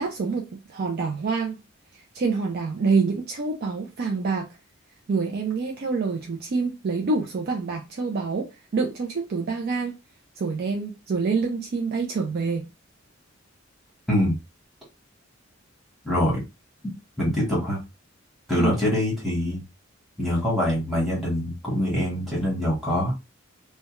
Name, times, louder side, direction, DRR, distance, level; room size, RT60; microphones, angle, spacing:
voice 1, 0.0-1.6 1.9-4.5 5.1-9.9 10.4-12.7 18.6-18.7, right 4 dB, 50° right, 0.4 m, -26 dB
voice 2, 16.0-16.4 17.2-17.8 18.5-19.6 20.2-23.1, equal, ahead, 1.1 m, -24 dB
2.4 x 2.1 x 2.9 m
head